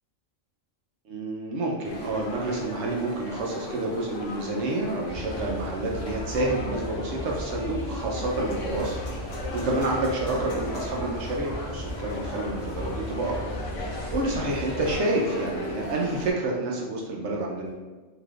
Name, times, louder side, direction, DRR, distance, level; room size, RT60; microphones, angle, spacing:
voice 1, 1.1-17.9, right 2 dB, 70° right, -1 dB, 0.9 m, -29 dB
sound 1, 1.8-16.3, left 2 dB, 80° left, 1.0 m, -37 dB
sound 2, 5.1-15.0, left 1 dB, 20° left, 1.1 m, -37 dB
3.3 x 2.9 x 2.4 m, 1.3 s
omnidirectional pair, 1.3 m